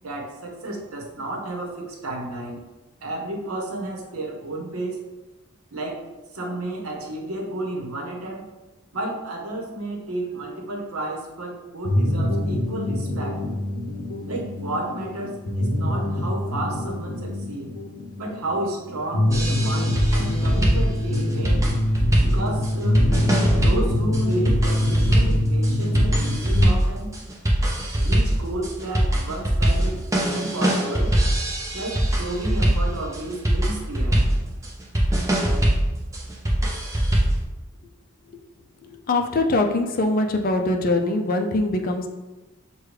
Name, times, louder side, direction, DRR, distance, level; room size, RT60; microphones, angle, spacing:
voice 1, 0.0-2.6 3.0-5.0 5.7-6.0 6.3-8.4 8.9-13.4 14.3-17.7 18.2-21.7 22.2-23.0 23.6-27.2 28.0-30.0 30.3-31.2 31.7-34.3, right 2 dB, 80° right, 1 dB, 0.9 m, -32 dB
sound 1, 11.8-26.6, left 1 dB, 85° left, 0.6 m, -25 dB
sound 2, 19.3-37.4, right 1 dB, 15° right, 0.6 m, -22 dB
voice 2, 39.1-42.1, left 2 dB, 40° left, 4 dB, 0.4 m, -22 dB
6.4 x 2.2 x 3.2 m, 1.1 s
head